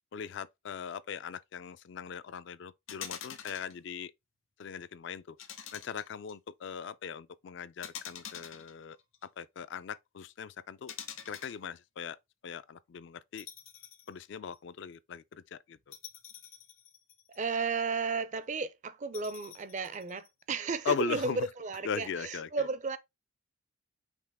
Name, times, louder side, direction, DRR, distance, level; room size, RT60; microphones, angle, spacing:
voice 1, 0.1-4.1 4.6-5.4 5.7-9.0 9.2-10.9 11.3-12.2 12.4-13.5 14.1-16.0 20.9-21.4 21.8-22.5, left 6 dB, 55° left, 0.3 m, -39 dB
sound 1, 2.9-3.7 5.4-6.3 7.8-9.3 10.9-11.6 13.4-14.1 14.5-14.6 15.9-17.5 19.1-20.3, left 9 dB, 75° left, 0.8 m, -46 dB
voice 2, 17.3-23.0, right 4 dB, 35° right, 0.4 m, -34 dB
5.3 x 2.9 x 3.4 m
head